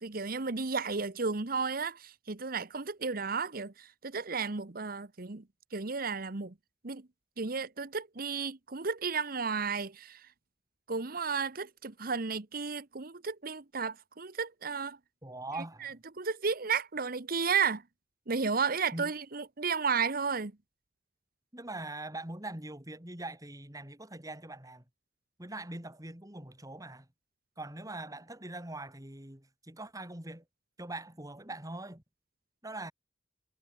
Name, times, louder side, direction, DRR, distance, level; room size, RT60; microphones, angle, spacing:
voice 1, 0.0-5.4 5.7-6.5 6.8-7.0 7.4-10.3 10.9-15.0 15.8-17.8 18.3-20.5, right 5 dB, 55° right, 1.2 m, -33 dB
voice 2, 15.2-16.0 18.9-19.1 21.5-24.8 25.4-27.1 27.6-30.4 30.8-32.0 32.6-32.9, right 2 dB, 20° right, 4.1 m, -42 dB
head